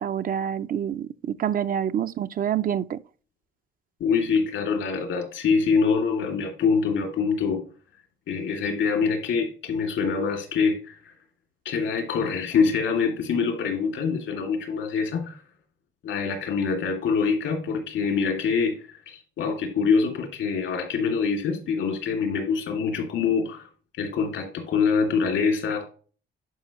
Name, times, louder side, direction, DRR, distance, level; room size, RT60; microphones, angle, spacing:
voice 1, 0.0-3.0, right 9 dB, 45° right, 0.4 m, -27 dB
voice 2, 4.0-7.6 8.3-10.9 11.6-15.4 16.0-18.8 19.1-23.6 24.0-25.9, left 5 dB, 80° left, 2.4 m, -25 dB
11.0 x 4.7 x 3.0 m
cardioid pair, 90°, 20 cm